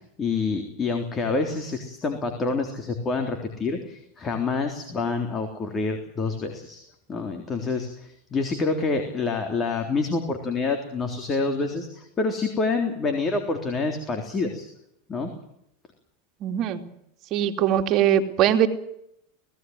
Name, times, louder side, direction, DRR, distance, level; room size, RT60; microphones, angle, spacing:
voice 1, 0.2-6.8 7.1-14.7 15.1-15.3, left 4 dB, 25° left, 4 dB, 3.6 m, -27 dB
voice 2, 16.4-16.9 17.3-18.7, right 10 dB, 45° right, 6 dB, 2.7 m, -21 dB
19.0 x 17.5 x 9.5 m, 0.76 s
supercardioid pair, 115°, 0 cm